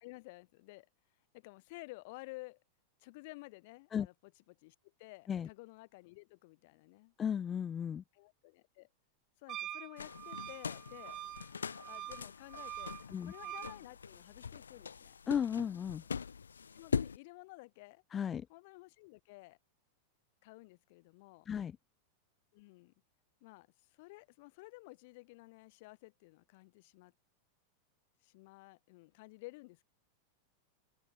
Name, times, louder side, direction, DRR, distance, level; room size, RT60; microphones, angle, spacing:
voice 1, 0.0-0.9 1.3-2.6 3.0-4.1 4.5-7.1 8.1-8.9 9.4-11.2 11.8-12.9 13.2-15.2 16.7-18.0 18.5-19.6 20.4-21.5 22.5-22.9 23.4-27.1 28.2-29.8, left 24 dB, 50° left, 1.2 m, -53 dB
voice 2, 7.2-8.0 13.1-13.3 15.3-16.0 18.1-18.5 21.5-21.8, left 8 dB, 25° left, 0.8 m, -35 dB
Wind instrument woodwind instrument, 9.5-13.8, right 12 dB, 30° right, 1.4 m, -45 dB
sound 1, 10.0-17.2, left 6 dB, 70° left, 0.4 m, -42 dB
open air
figure-of-eight pair, 90°, 0 cm